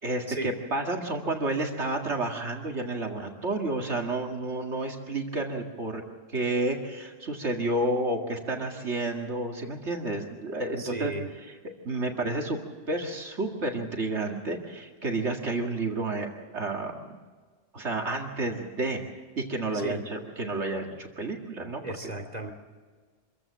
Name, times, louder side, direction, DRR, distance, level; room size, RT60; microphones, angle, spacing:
voice 1, 0.0-6.0 6.3-11.1 11.8-12.6 12.9-16.3 16.5-17.2 17.7-19.0 19.4-21.9, right 2 dB, 70° right, 2 dB, 2.3 m, -30 dB
voice 2, 10.8-11.3 19.7-20.0 21.8-22.5, right 2 dB, 35° right, 5 dB, 2.7 m, -35 dB
26.0 x 15.5 x 7.5 m, 1.5 s
omnidirectional pair, 1.2 m